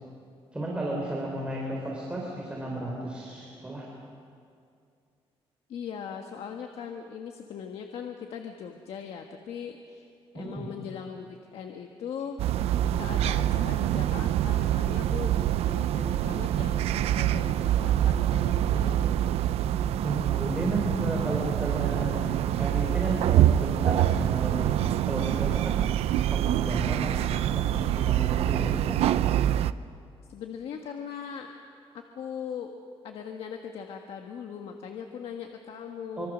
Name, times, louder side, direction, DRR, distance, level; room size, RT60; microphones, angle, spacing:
voice 1, 0.5-3.9 10.3-10.7 20.0-22.2 22.6-24.7 25.1-29.0 36.2-36.3, right 1 dB, 10° right, -3 dB, 4.0 m, -33 dB
voice 2, 5.7-12.4 13.0-19.4 30.3-31.5 31.9-32.7 33.0-36.3, left 7 dB, 70° left, 3 dB, 1.5 m, -40 dB
sound 1, 12.4-29.7, right 12 dB, 85° right, 0.6 m, -25 dB
25.5 x 25.0 x 6.3 m, 2.3 s
cardioid pair, 135°, 10 cm